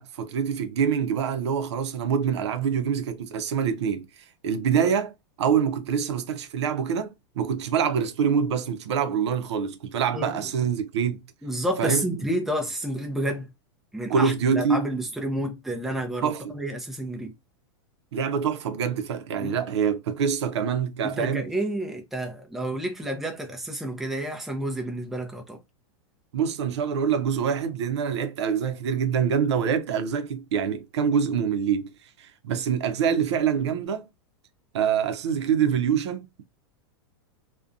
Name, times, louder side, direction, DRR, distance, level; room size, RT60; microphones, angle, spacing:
voice 1, 0.0-5.1 5.4-11.2 11.8-12.0 14.1-14.9 16.2-16.6 18.1-21.5 26.3-34.1 34.7-36.4, right 7 dB, 85° right, 0.5 m, -25 dB
voice 2, 10.1-10.5 11.4-13.5 13.9-17.3 19.4-19.6 21.0-25.6, right 1 dB, ahead, 0.4 m, -30 dB
2.4 x 2.1 x 2.5 m
supercardioid pair, 150°, 14 cm